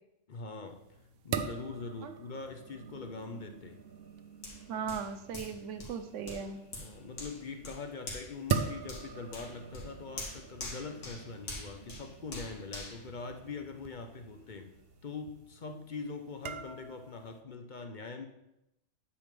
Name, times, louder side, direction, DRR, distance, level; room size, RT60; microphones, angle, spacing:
voice 1, 0.3-0.8 1.2-3.8 6.8-14.7 15.0-18.3, left 4 dB, 45° left, 6 dB, 0.8 m, -43 dB
sound 1, 0.7-17.4, right 6 dB, 60° right, 0.8 m, -42 dB
Hands, 4.4-14.0 14.4-14.6, left 2 dB, 85° left, 2.0 m, -46 dB
voice 2, 4.7-6.6, right 6 dB, 85° right, 8 dB, 1.1 m, -38 dB
9.6 x 3.5 x 6.7 m, 0.86 s
omnidirectional pair, 1.2 m